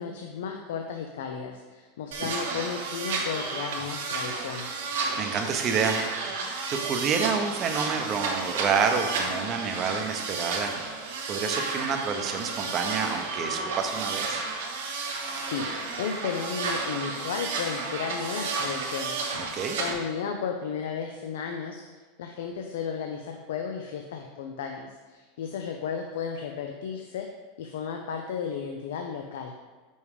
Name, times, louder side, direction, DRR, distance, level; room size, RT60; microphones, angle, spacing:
voice 1, 0.0-4.9 15.5-15.7 16.0-21.9 22.2-27.3 27.6-29.5, left 6 dB, 90° left, 4 dB, 0.5 m, -34 dB
sound 1, 2.1-19.9, right 4 dB, 85° right, 1.1 m, -32 dB
voice 2, 4.9-6.3 6.8-10.7 11.3-14.4 19.4-19.8, right 6 dB, 30° right, 5 dB, 0.7 m, -29 dB
5.4 x 4.8 x 4.9 m, 1.3 s
supercardioid pair, 145°, 0 cm